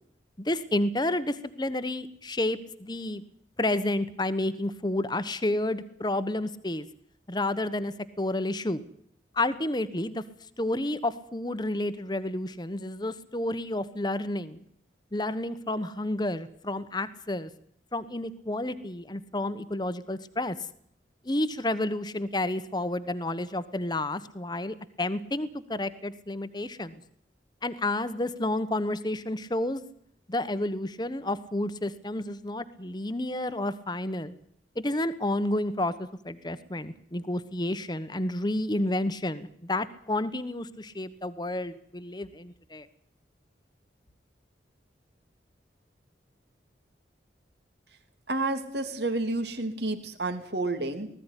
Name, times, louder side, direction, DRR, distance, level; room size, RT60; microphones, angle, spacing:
voice 1, 0.4-3.2 3.6-6.9 7.3-8.8 9.3-10.2 10.6-14.6 15.1-17.5 17.9-20.5 21.2-27.0 27.6-29.8 30.3-34.4 34.8-42.9, left 1 dB, 25° left, 13 dB, 1.1 m, -30 dB
voice 2, 48.3-51.1, right 2 dB, 65° right, 6 dB, 3.1 m, -30 dB
19.5 x 15.0 x 9.9 m, 0.66 s
head